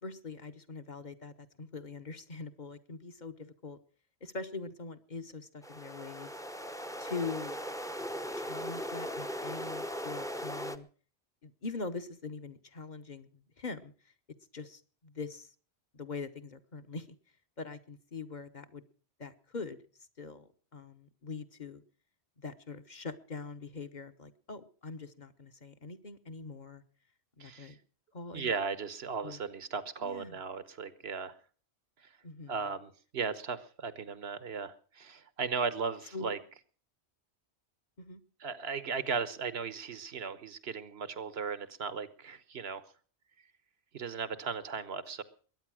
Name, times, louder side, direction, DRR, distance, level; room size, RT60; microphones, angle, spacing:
voice 1, 0.0-3.8 4.2-6.3 7.0-7.6 8.4-10.9 11.4-13.3 13.6-13.9 14.5-15.5 15.9-17.1 17.6-18.8 19.2-19.8 20.2-20.5 20.7-21.8 22.4-26.8 27.4-27.8 28.1-28.5 29.2-29.4 30.0-30.4 32.2-32.6 36.1-36.3 38.0-38.2, left 4 dB, 45° left, 10 dB, 1.3 m, -43 dB
sound 1, 5.6-10.8, equal, 5° left, 0.8 m, -38 dB
voice 2, 27.4-27.7 28.3-31.3 32.5-36.4 38.4-42.8 43.9-45.2, right 5 dB, 70° right, 15 dB, 1.4 m, -36 dB
21.5 x 9.4 x 6.2 m, 0.41 s
omnidirectional pair, 1.1 m